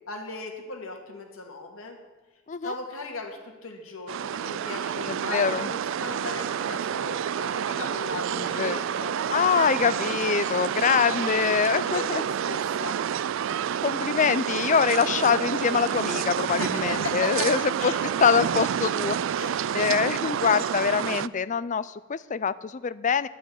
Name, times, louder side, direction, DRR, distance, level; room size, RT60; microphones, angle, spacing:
voice 1, 0.1-2.0 2.6-9.8 10.8-13.0 16.5-17.5 17.8-18.0 19.4-19.7 20.3-20.4, left 3 dB, 75° left, 2 dB, 2.4 m, -38 dB
sound 1, 4.1-21.3, right 9 dB, 65° right, 0.3 m, -29 dB
voice 2, 5.1-5.7 8.3-8.8 9.3-12.2 13.8-17.9 18.2-19.2 19.7-23.3, left 6 dB, 35° left, 17 dB, 0.4 m, -24 dB
9.9 x 8.6 x 10.0 m, 1.3 s
head